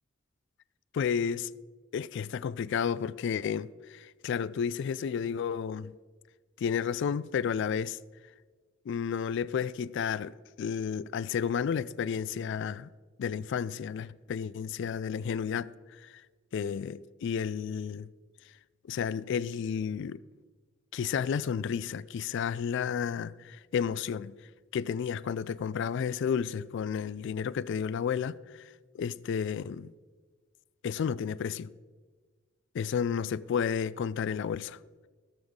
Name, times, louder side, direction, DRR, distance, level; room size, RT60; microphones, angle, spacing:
voice 1, 0.9-1.5 1.9-5.9 6.6-8.0 8.9-12.9 13.2-16.2 16.5-18.1 18.8-20.2 20.9-24.4 24.7-29.9 30.8-31.7 32.7-34.8, left 7 dB, 65° left, 0.3 m, -32 dB
17.0 x 7.1 x 3.7 m
head